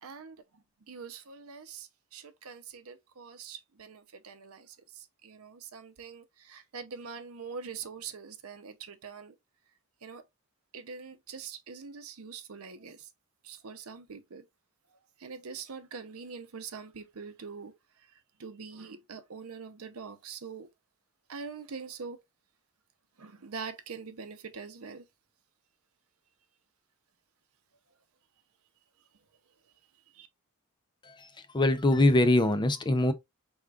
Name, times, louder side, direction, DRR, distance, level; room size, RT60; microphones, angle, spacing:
voice 1, 0.0-9.3 10.0-10.2 10.7-13.1 13.4-14.4 14.9-17.7 18.4-20.7 21.3-22.2 23.2-25.0 30.1-30.3, right 5 dB, 85° right, 0.7 m, -44 dB
voice 2, 31.0-33.1, left 1 dB, 20° left, 0.5 m, -24 dB
4.7 x 3.6 x 2.4 m
head